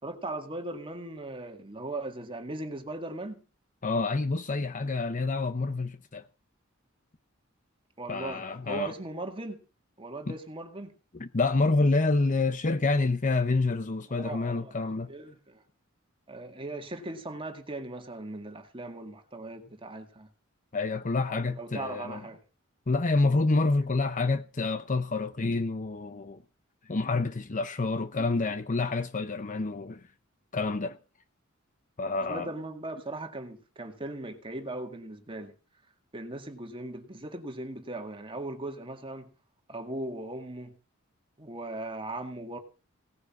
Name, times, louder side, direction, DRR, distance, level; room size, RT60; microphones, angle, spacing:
voice 1, 0.0-3.4 8.0-9.6 10.0-11.0 14.1-14.7 15.1-15.6 16.3-20.3 21.3-22.4 32.2-35.6 36.1-39.3 39.7-40.8 41.4-42.6, right 2 dB, 25° right, 2.0 m, -38 dB
voice 2, 3.8-6.2 8.1-8.9 10.3-10.4 11.2-15.1 20.7-22.2 22.9-26.4 26.9-30.0 30.5-31.0 32.0-32.5, left 3 dB, 40° left, 0.8 m, -28 dB
18.0 x 9.9 x 6.1 m
head